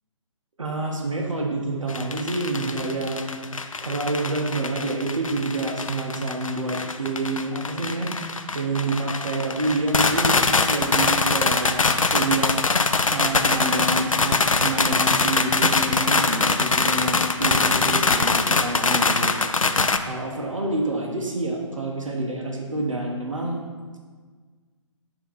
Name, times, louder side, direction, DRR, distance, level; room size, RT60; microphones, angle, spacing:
voice 1, 0.6-8.1 8.5-11.9 12.1-12.5 13.1-19.7 20.0-23.6, right 2 dB, 75° right, 0 dB, 1.0 m, -28 dB
sound 1, 1.9-20.0, left 4 dB, 85° left, 0.4 m, -23 dB
8.1 x 2.9 x 4.0 m, 1.5 s
figure-of-eight pair, 135°, 17 cm